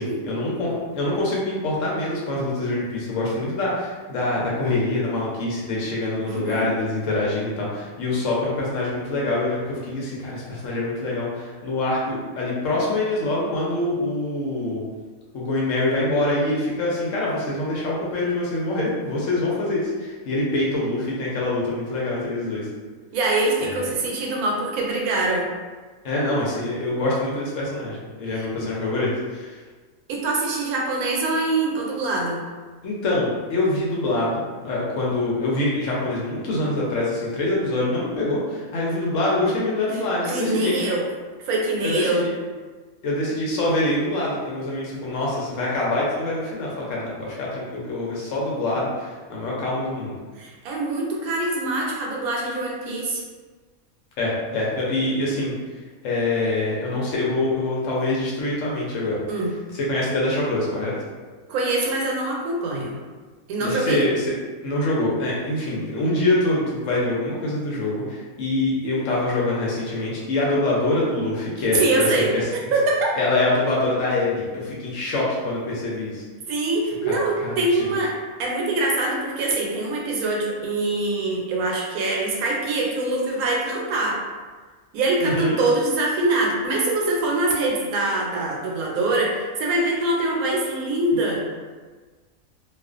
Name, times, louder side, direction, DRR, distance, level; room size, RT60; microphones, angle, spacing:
voice 1, 0.0-14.8 15.3-22.7 23.6-23.9 26.0-29.6 32.8-40.8 41.8-42.3 43.0-50.2 54.2-55.5 56.0-59.2 59.7-60.9 63.6-64.3 64.6-72.5 73.1-76.3 77.0-77.1 77.4-77.9 85.2-85.6, left 2 dB, 70° left, -5 dB, 0.9 m, -25 dB
voice 2, 6.3-6.7 23.1-25.5 28.3-28.5 30.1-32.4 40.3-41.0 41.4-42.2 50.4-53.2 59.3-59.5 61.5-63.0 63.5-64.1 71.7-73.1 76.5-78.1 78.4-84.2 84.9-91.4, right 2 dB, 85° right, -2 dB, 1.1 m, -24 dB
2.4 x 2.3 x 2.4 m, 1.4 s
omnidirectional pair, 1.5 m